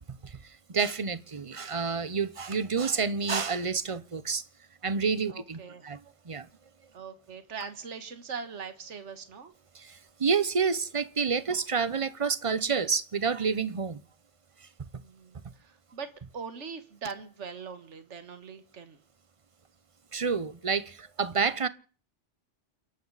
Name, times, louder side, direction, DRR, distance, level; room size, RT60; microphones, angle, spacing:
voice 1, 0.2-4.4 4.8-6.5 9.7-14.0 20.1-21.7, right 5 dB, 30° right, 0.8 m, -29 dB
voice 2, 5.3-5.9 6.9-9.5 15.0-19.0, right 5 dB, 75° right, 1.8 m, -41 dB
29.5 x 11.5 x 4.0 m
omnidirectional pair, 1.2 m